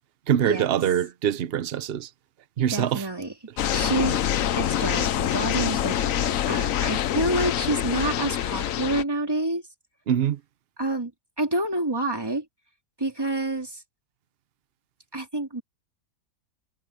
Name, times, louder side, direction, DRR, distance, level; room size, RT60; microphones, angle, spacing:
voice 1, 0.3-2.1 2.6-3.0 10.1-10.4, right 9 dB, 50° right, 0.9 m, -24 dB
voice 2, 2.7-3.3 3.7-4.2 4.6-9.6 10.8-11.1 11.4-12.4 13.0-13.8 15.1-15.6, right 2 dB, 15° right, 3.1 m, -28 dB
sound 1, 3.6-9.0, left 10 dB, 65° left, 1.1 m, -25 dB
omnidirectional pair, 1.6 m